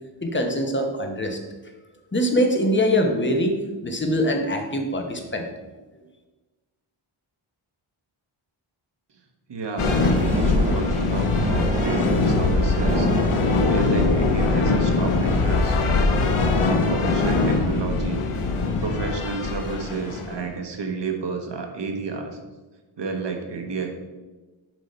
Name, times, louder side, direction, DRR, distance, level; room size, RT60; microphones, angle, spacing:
voice 1, 0.2-1.4 2.1-5.4, equal, 25° left, 3 dB, 1.0 m, -23 dB
voice 2, 9.5-13.1 13.6-15.8 16.6-18.2 18.8-22.4 22.9-23.9, right 4 dB, 55° right, 4 dB, 1.2 m, -31 dB
sound 1, 9.8-20.5, left 3 dB, 80° left, 1.0 m, -22 dB
sound 2, 9.8-15.1, right 3 dB, 20° right, 0.3 m, -31 dB
7.6 x 5.1 x 4.3 m, 1.2 s
wide cardioid pair, 115°, 49 cm